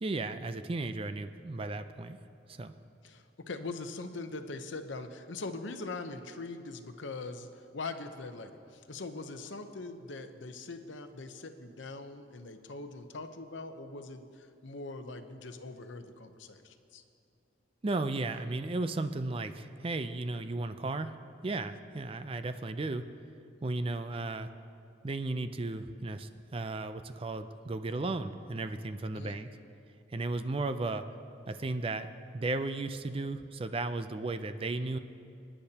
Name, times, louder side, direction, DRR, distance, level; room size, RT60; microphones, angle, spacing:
voice 1, 0.0-2.2 2.5-2.7 17.8-21.1 21.4-23.1 23.6-24.5 25.0-29.5 30.1-31.0 31.5-32.1 32.3-35.0, right 2 dB, 30° right, 10 dB, 0.4 m, -35 dB
voice 2, 3.0-17.0 29.1-29.4, left 3 dB, 80° left, 7 dB, 0.8 m, -42 dB
26.0 x 10.0 x 2.9 m, 2.6 s
head